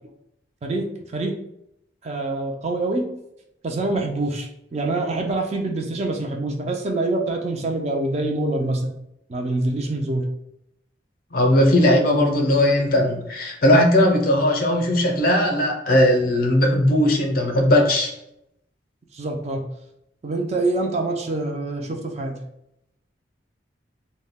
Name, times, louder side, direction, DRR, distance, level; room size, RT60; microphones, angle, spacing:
voice 1, 0.6-1.4 2.0-3.1 3.6-8.9 9.3-10.3 19.1-19.6 20.2-22.4, right 2 dB, 35° right, 2 dB, 0.4 m, -25 dB
voice 2, 11.3-18.1, left 1 dB, 50° left, 2 dB, 0.5 m, -18 dB
2.2 x 2.1 x 3.4 m, 0.79 s
head